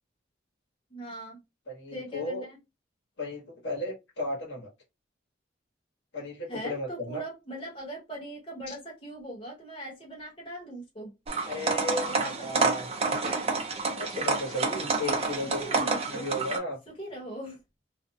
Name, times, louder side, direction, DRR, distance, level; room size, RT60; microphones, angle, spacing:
voice 1, 0.9-1.4 1.9-2.6 6.5-11.1 12.0-12.8 15.4-16.5 17.0-17.6, right 1 dB, 25° left, 1.0 m, -40 dB
voice 2, 1.7-2.4 3.2-4.7 6.1-7.2 8.7-8.8 11.4-12.9 13.9-16.8, left 1 dB, 70° left, 1.1 m, -35 dB
sound 1, 11.3-16.6, right 4 dB, 30° right, 0.5 m, -29 dB
2.5 x 2.1 x 2.6 m
head